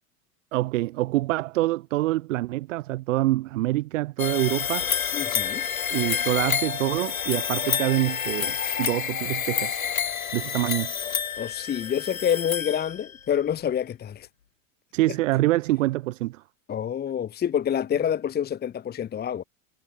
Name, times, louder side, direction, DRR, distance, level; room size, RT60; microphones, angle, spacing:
voice 1, 0.5-4.9 5.9-9.8 10.3-11.0 14.9-16.4, right 17 dB, 70° right, 1.1 m, -26 dB
sound 1, 4.2-13.2, left 8 dB, 90° left, 3.8 m, -29 dB
voice 2, 5.1-5.6 11.4-14.3 16.7-19.4, left 9 dB, 25° left, 1.1 m, -27 dB
hypercardioid pair, 90°, 40 cm